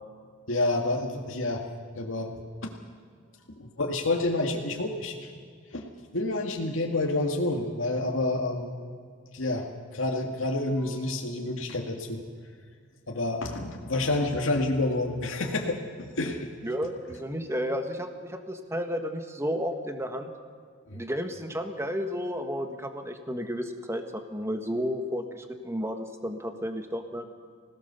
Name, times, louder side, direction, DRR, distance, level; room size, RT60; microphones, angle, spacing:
voice 1, 0.5-1.6 2.0-2.7 3.6-5.3 5.7-8.7 9.3-9.7 9.9-12.2 13.1-16.5 20.9-21.0, left 2 dB, 85° left, 0 dB, 2.0 m, -29 dB
voice 2, 16.6-20.3 20.9-27.2, equal, 15° right, 6 dB, 1.6 m, -32 dB
25.0 x 18.0 x 7.0 m, 2.1 s
head